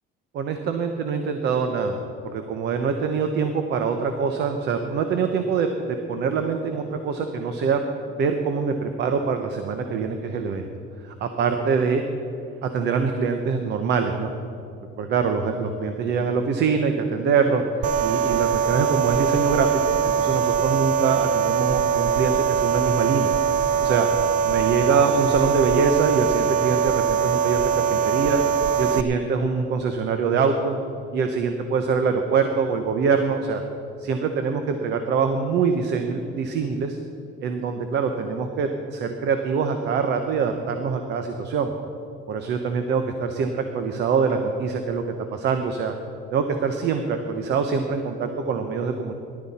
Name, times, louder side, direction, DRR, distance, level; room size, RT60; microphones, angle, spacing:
voice 1, 0.3-7.8 8.1-10.7 11.0-12.0 12.6-14.3 15.0-17.6 18.0-23.3 23.8-24.1 24.4-28.4 28.8-30.8 31.1-33.6 34.0-37.0 37.4-41.7 42.3-45.0 45.3-45.9 46.3-49.1, right 5 dB, 55° right, 6 dB, 0.9 m, -24 dB
sound 1, 17.8-29.0, right 7 dB, 40° right, 0.5 m, -22 dB
18.0 x 12.0 x 4.3 m, 2.6 s
cardioid pair, 140°, 21 cm